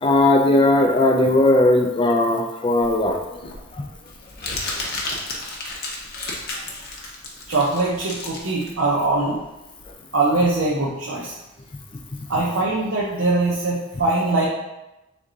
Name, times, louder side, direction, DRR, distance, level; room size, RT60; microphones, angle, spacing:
voice 1, 0.0-3.4 3.7-3.9 4.4-4.5 9.9-10.0, left 2 dB, 25° left, 3 dB, 0.3 m, -18 dB
Crumpling crinkling, 2.8-9.9, left 2 dB, 45° left, 0.8 m, -33 dB
voice 2, 7.5-9.4 10.1-11.3 12.3-14.5, right 2 dB, 70° right, -4 dB, 0.6 m, -22 dB
3.7 x 3.5 x 3.9 m, 0.98 s
head